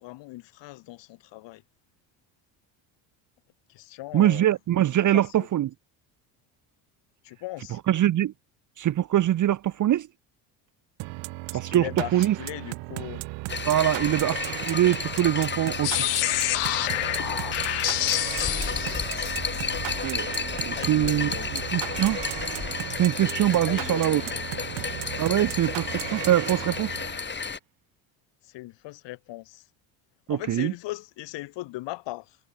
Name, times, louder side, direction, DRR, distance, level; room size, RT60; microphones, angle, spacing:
voice 1, 0.0-1.6 3.7-4.5 5.0-5.5 7.2-7.8 11.5-13.2 18.1-19.1 20.8-22.1 23.7-24.8 28.4-29.6 30.3-32.4, left 18 dB, 70° left, 4.5 m, -39 dB
voice 2, 4.1-5.7 7.9-8.3 8.8-10.1 11.5-12.4 13.7-16.1 20.0-22.2 23.0-24.2 25.2-26.9 30.3-30.7, right 12 dB, 40° right, 0.9 m, -23 dB
sound 1, 11.0-27.3, right 24 dB, 75° right, 1.5 m, -36 dB
sound 2, 13.5-27.6, left 5 dB, 25° left, 3.8 m, -32 dB
sound 3, 15.8-19.6, left 40 dB or more, 90° left, 2.1 m, -28 dB
supercardioid pair, 95°, 44 cm